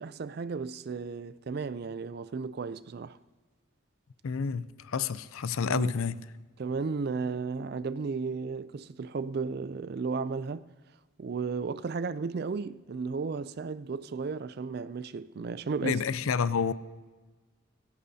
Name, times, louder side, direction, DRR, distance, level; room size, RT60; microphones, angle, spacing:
voice 1, 0.0-3.2 5.7-5.9 6.6-10.6 11.2-16.0, right 4 dB, 50° right, 0.3 m, -34 dB
voice 2, 4.2-6.2 15.8-16.7, left 6 dB, 80° left, 0.5 m, -29 dB
19.5 x 16.5 x 2.8 m
head